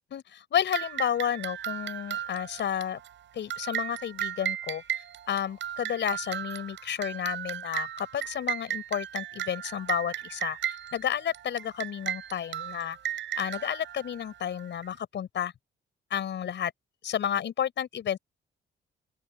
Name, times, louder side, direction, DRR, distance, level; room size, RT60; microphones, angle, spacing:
voice 1, 0.1-3.0 3.3-13.0 13.4-15.5 16.1-16.7 17.0-18.2, left 9 dB, 65° left, 6.1 m, -31 dB
sound 1, 0.7-14.9, right 11 dB, 70° right, 7.6 m, -36 dB
open air
cardioid pair, 90°, 20 cm